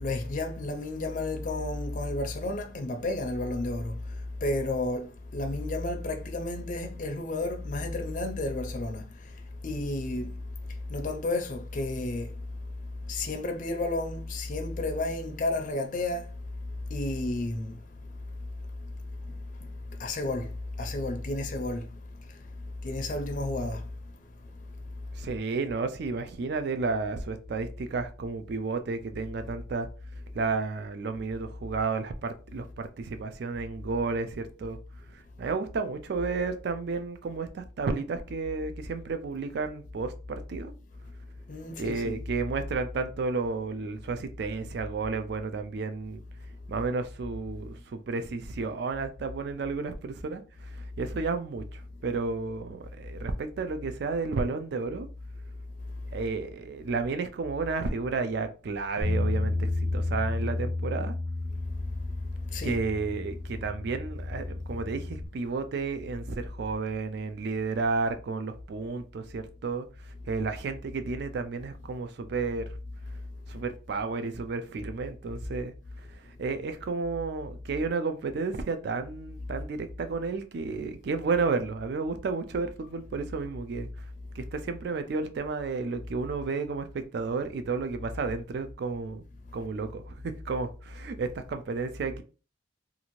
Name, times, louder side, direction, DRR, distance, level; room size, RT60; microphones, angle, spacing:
voice 1, 0.0-3.9 4.4-9.0 9.6-10.3 10.9-12.3 13.1-16.2 16.9-17.8 20.0-20.5 20.8-21.8 22.8-23.8 41.5-42.2 62.5-62.8, left 2 dB, 40° left, 0.4 m, -31 dB
voice 2, 25.1-29.9 30.3-34.8 35.1-40.7 41.8-46.2 46.7-55.1 56.1-61.1 62.6-69.9 70.3-72.7 73.5-75.7 76.4-83.9 84.4-89.2 89.5-92.2, right 4 dB, 55° right, 0.3 m, -32 dB
Bass guitar, 59.0-65.3, left 2 dB, 85° right, 1.5 m, -32 dB
2.6 x 2.4 x 3.0 m
head